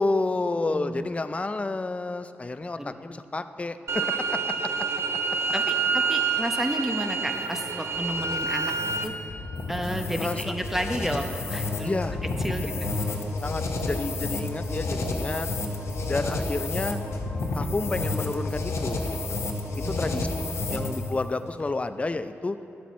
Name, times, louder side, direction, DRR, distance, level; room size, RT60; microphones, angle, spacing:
voice 1, 0.0-4.9 10.2-10.5 11.8-12.2 13.1-15.5 16.1-17.0 17.5-20.3 20.7-22.6, left 3 dB, 25° left, 11 dB, 0.4 m, -30 dB
voice 2, 0.7-1.1 2.8-3.2 5.5-8.7 9.0-9.1 9.7-12.0 12.4-12.9 19.8-20.6, right 1 dB, 5° right, 5 dB, 0.8 m, -32 dB
sound 1, 3.9-9.0, right 5 dB, 65° right, 0.6 m, -27 dB
sound 2, 7.3-21.2, left 2 dB, 75° left, 0.9 m, -30 dB
11.0 x 7.4 x 4.2 m, 2.7 s
cardioid pair, 70°, 5 cm